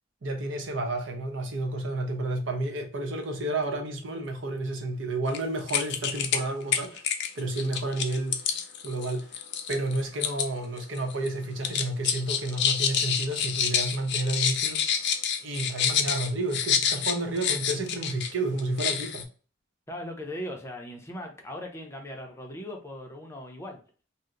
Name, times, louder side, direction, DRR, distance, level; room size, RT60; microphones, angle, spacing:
voice 1, 0.2-7.0 7.4-9.4 9.7-19.3, right 2 dB, 70° right, 0.7 m, -31 dB
sound 1, 5.3-5.4 5.7-6.4 6.7-10.5 10.8-11.3 11.6-18.3 18.6-19.2, left 8 dB, 60° left, 0.4 m, -27 dB
voice 2, 19.9-23.8, left 1 dB, 15° left, 0.6 m, -39 dB
2.8 x 2.1 x 3.6 m
head